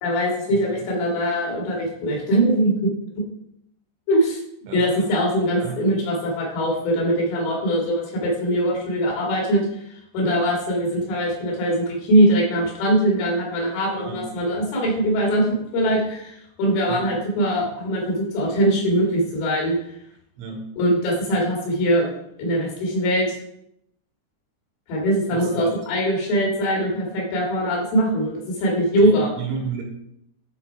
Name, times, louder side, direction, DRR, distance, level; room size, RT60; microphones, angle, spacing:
voice 1, 0.0-2.9 4.1-4.4 4.7-19.8 20.8-22.1 22.4-23.4 24.9-29.3, right 1 dB, 70° left, -1 dB, 4.4 m, -22 dB
voice 2, 4.7-5.1 5.6-5.9 14.1-14.3 16.9-17.2 20.4-20.7 25.3-25.7 29.0-29.8, right 5 dB, 75° right, 1 dB, 3.8 m, -33 dB
12.5 x 4.1 x 4.5 m, 0.76 s
omnidirectional pair, 5.8 m